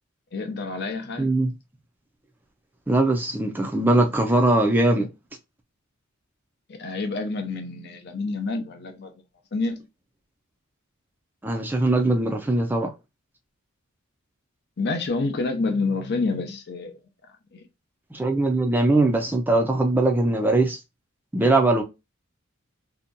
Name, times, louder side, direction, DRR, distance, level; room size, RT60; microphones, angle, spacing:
voice 1, 0.3-1.3 6.7-9.2 9.5-9.8 14.8-17.0 17.5-17.7, left 3 dB, 50° left, 0.6 m, -28 dB
voice 2, 1.2-1.5 2.9-5.1 11.4-12.9 18.1-20.8 21.3-21.8, right 2 dB, 10° right, 0.4 m, -21 dB
2.8 x 2.2 x 2.5 m
head